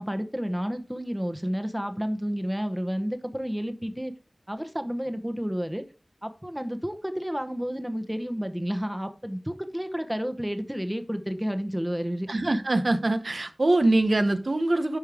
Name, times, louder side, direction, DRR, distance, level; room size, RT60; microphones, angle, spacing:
voice 1, 0.0-4.1 4.5-5.8 6.2-12.3, equal, 10° right, 1.0 m, -31 dB
voice 2, 12.3-15.0, right 2 dB, 65° right, 0.9 m, -23 dB
11.0 x 5.3 x 3.5 m
wide cardioid pair, 55°, 0 cm